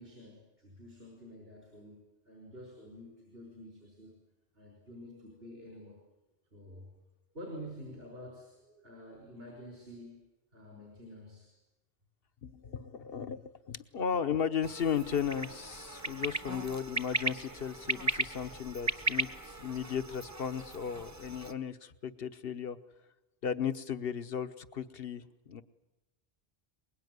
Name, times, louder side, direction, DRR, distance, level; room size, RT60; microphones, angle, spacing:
voice 1, 0.0-4.2 4.5-6.0 6.5-6.9 7.3-10.2 10.5-11.6 12.6-12.8, equal, 70° right, -1 dB, 5.9 m, -49 dB
voice 2, 12.4-22.8 23.4-25.6, left 7 dB, 70° left, 11 dB, 1.2 m, -35 dB
sound 1, 14.6-21.5, right 2 dB, 15° right, 0.9 m, -37 dB
24.0 x 21.5 x 9.5 m, 1.0 s
omnidirectional pair, 1.0 m